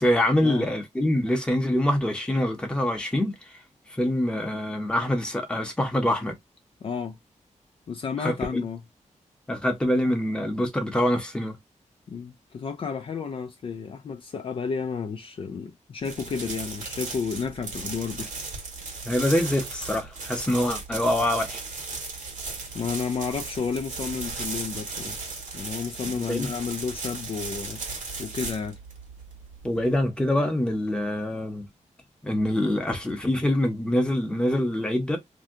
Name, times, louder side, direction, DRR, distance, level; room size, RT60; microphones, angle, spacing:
voice 1, 0.0-3.6 3.9-6.3 8.2-8.6 9.5-11.6 19.0-21.6 26.1-26.5 29.6-31.7 32.2-35.2, left 1 dB, 5° left, 0.8 m, -25 dB
voice 2, 6.8-7.2 7.9-8.8 12.1-18.3 22.7-25.1 25.5-27.8 28.2-28.8, left 5 dB, 45° left, 0.4 m, -31 dB
sound 1, 16.0-30.0, right 3 dB, 85° right, 1.3 m, -36 dB
2.7 x 2.3 x 3.5 m
wide cardioid pair, 175°, 13 cm